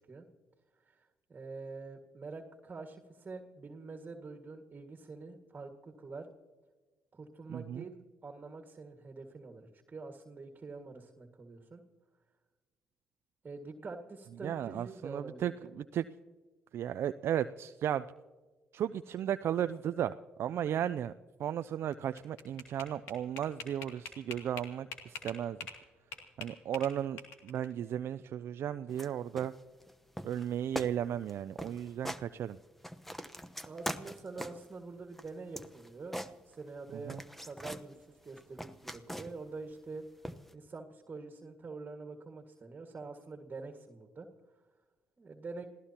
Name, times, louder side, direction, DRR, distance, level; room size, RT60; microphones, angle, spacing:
voice 1, 0.9-6.3 7.1-11.8 13.4-15.7 33.7-36.2 36.5-37.2 37.4-40.0 40.5-44.3 45.2-45.7, right 3 dB, 35° right, 4 dB, 1.9 m, -46 dB
voice 2, 7.5-7.9 14.4-16.1 16.7-18.1 18.7-21.1 21.4-25.6 26.4-29.5 30.2-32.6 36.9-37.2, right 10 dB, 60° right, 11 dB, 0.4 m, -35 dB
sound 1, 21.9-25.8 26.1-27.6, left 5 dB, 80° left, 2.5 m, -44 dB
sound 2, 28.9-29.1 29.4-29.9 30.2-30.5 30.7-30.9 31.2-31.3 31.6-32.2 32.6-34.7 35.1-36.8 37.1-37.9 38.3-39.5 40.2-40.5, equal, 5° left, 1.0 m, -42 dB
27.0 x 16.0 x 2.9 m, 1.3 s
hypercardioid pair, 55°, 5 cm